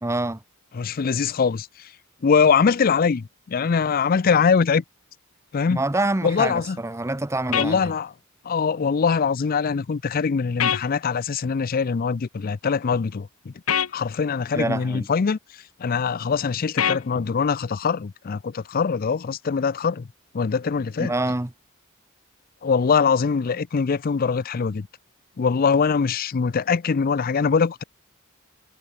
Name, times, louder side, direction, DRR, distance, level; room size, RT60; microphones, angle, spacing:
voice 1, 0.0-0.4 5.7-7.9 14.5-15.1 21.0-21.5, right 2 dB, 15° right, 0.7 m, -26 dB
voice 2, 0.7-1.7 2.2-4.8 5.5-5.8 6.2-6.8 7.5-8.1 8.5-13.5 13.9-15.4 15.8-20.1 20.3-21.1 22.6-24.9 25.4-27.8, left 5 dB, 40° left, 0.4 m, -22 dB
sound 1, 7.5-7.7 10.6-10.8 13.7-13.9 16.8-17.0, left 9 dB, 80° left, 0.9 m, -22 dB
head